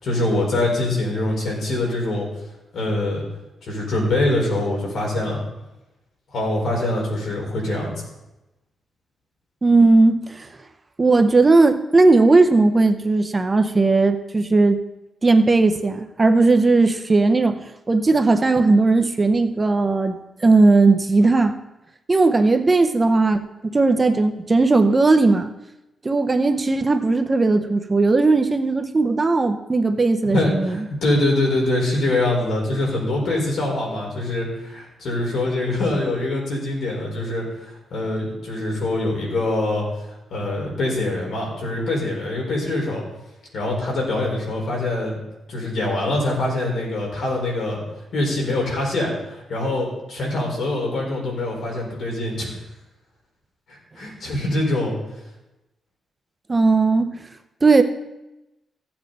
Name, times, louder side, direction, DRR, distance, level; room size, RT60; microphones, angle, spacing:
voice 1, 0.0-2.3 2.7-3.2 3.6-5.4 6.3-8.0 30.3-39.8 40.3-43.0 43.5-45.2 45.5-47.8 48.1-52.5 53.7-55.0, left 2 dB, 65° left, -2 dB, 4.6 m, -24 dB
voice 2, 9.6-10.5 11.0-14.8 15.2-21.6 22.1-25.5 26.0-30.8 56.5-57.1 57.6-57.8, right 3 dB, 20° right, 7 dB, 0.6 m, -17 dB
15.5 x 8.7 x 4.0 m, 0.97 s
wide cardioid pair, 140°, 0 cm